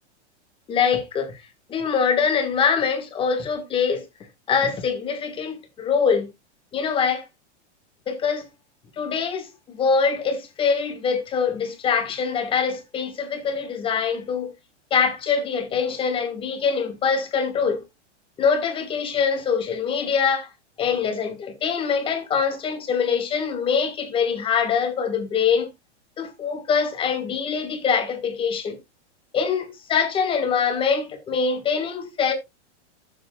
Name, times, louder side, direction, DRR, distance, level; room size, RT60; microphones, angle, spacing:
voice 1, 0.7-1.3 1.7-4.0 4.5-6.3 6.7-7.2 8.1-8.5 9.0-14.5 14.9-17.8 18.4-20.5 20.8-25.7 26.2-28.8 29.3-32.3, left 6 dB, 15° left, 1.4 m, -23 dB
14.0 x 7.5 x 2.3 m
supercardioid pair, 170°, 35 cm